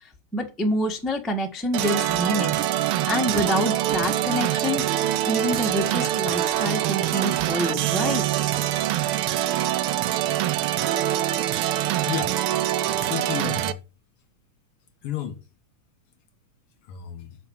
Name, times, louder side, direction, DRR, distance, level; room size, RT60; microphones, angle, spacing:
voice 1, 0.3-2.6 3.0-4.9 5.2-8.2, equal, ahead, 0.7 m, -26 dB
sound 1, 1.7-13.7, right 13 dB, 80° right, 1.2 m, -24 dB
voice 2, 12.1-12.4 12.8-13.8 15.0-15.5 16.8-17.4, left 9 dB, 60° left, 2.0 m, -32 dB
7.1 x 5.9 x 7.2 m
omnidirectional pair, 3.3 m